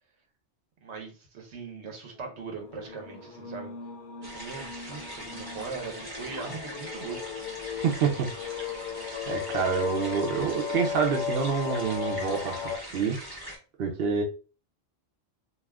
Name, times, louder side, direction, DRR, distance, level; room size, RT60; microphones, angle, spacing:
voice 1, 0.8-3.7 4.3-7.3, right 5 dB, 85° right, 1.1 m, -40 dB
sound 1, 2.5-12.8, left 7 dB, 60° left, 0.6 m, -36 dB
sound 2, 4.2-13.6, right 1 dB, 20° right, 0.9 m, -42 dB
voice 2, 7.8-8.3 9.3-13.2 13.8-14.2, right 6 dB, 65° right, 0.8 m, -27 dB
2.4 x 2.4 x 3.4 m
omnidirectional pair, 1.1 m